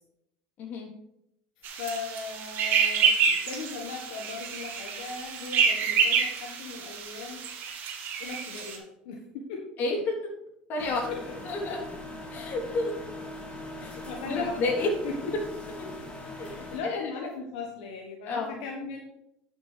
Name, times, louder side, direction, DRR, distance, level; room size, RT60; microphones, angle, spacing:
voice 1, 0.6-0.9 9.8-10.1 10.7-11.1 11.4-11.8 12.3-12.9 13.8-14.9 16.4-16.5 16.8-17.0 18.3-18.6, left 3 dB, 50° left, 0 dB, 3.1 m, -30 dB
voice 2, 1.6-7.5 8.2-9.7 11.1-11.4 11.6-11.8 13.8-15.3 16.4-19.0, left 4 dB, 80° left, 0 dB, 1.4 m, -38 dB
sound 1, 1.6-8.8, right 6 dB, 55° right, 1.8 m, -28 dB
sound 2, 10.8-16.8, left 1 dB, 30° left, 2.8 m, -41 dB
11.5 x 6.3 x 3.3 m, 0.80 s
supercardioid pair, 100°, 4 cm